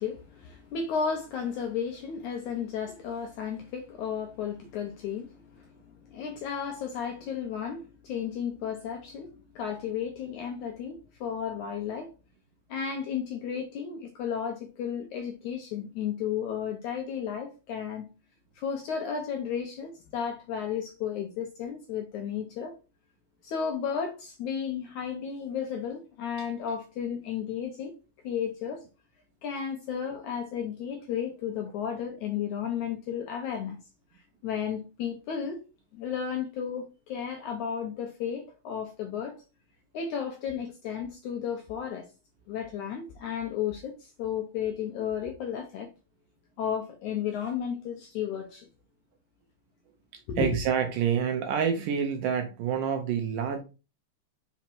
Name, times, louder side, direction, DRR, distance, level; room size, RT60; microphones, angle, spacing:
voice 1, 0.0-12.1 12.7-18.1 18.6-22.8 23.4-27.9 28.2-28.8 29.4-33.8 34.1-35.6 35.9-39.4 39.9-42.1 42.5-45.9 46.6-48.7 50.3-50.5, left 7 dB, 75° left, 1.8 m, -33 dB
voice 2, 50.1-53.6, right 7 dB, 75° right, 2.0 m, -28 dB
5.8 x 4.0 x 4.5 m
omnidirectional pair, 4.3 m